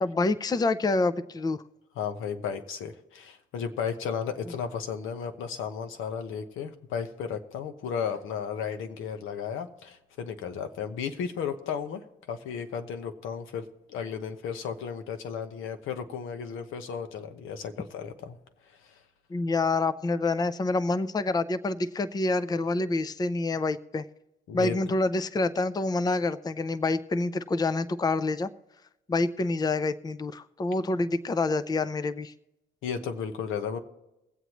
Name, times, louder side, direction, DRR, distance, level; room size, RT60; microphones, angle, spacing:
voice 1, 0.0-1.6 19.3-24.0 24.5-28.5 29.1-32.3, left 3 dB, 20° left, 13 dB, 0.5 m, -27 dB
voice 2, 2.0-18.4 24.5-24.8 32.8-33.8, left 7 dB, 90° left, 7 dB, 1.0 m, -34 dB
22.0 x 8.0 x 3.0 m, 0.93 s
cardioid pair, 90°, 20 cm